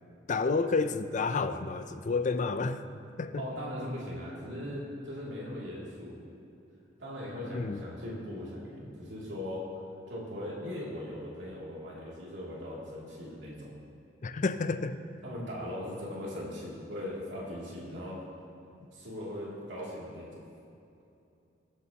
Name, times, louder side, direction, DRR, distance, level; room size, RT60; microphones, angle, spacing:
voice 1, 0.3-2.9 3.2-3.5 7.5-7.8 14.2-15.0, left 4 dB, 45° left, 11 dB, 0.5 m, -30 dB
voice 2, 3.4-6.2 7.0-9.6 10.1-13.7 15.2-18.2 18.9-20.4, left 1 dB, 70° right, -6 dB, 2.7 m, -39 dB
22.0 x 8.1 x 2.9 m, 2.7 s
head